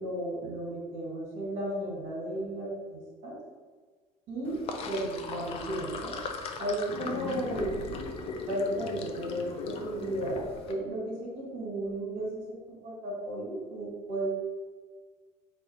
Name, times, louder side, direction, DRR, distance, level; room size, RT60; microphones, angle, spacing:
voice 1, 0.0-3.3 4.3-4.6 4.9-6.1 6.6-7.8 8.5-14.3, right 1 dB, 45° right, -3 dB, 1.4 m, -34 dB
Sink (filling or washing), 4.4-10.7, left 4 dB, 40° left, 0.4 m, -38 dB
3.9 x 2.5 x 4.1 m, 1.4 s
cardioid pair, 145°, 14 cm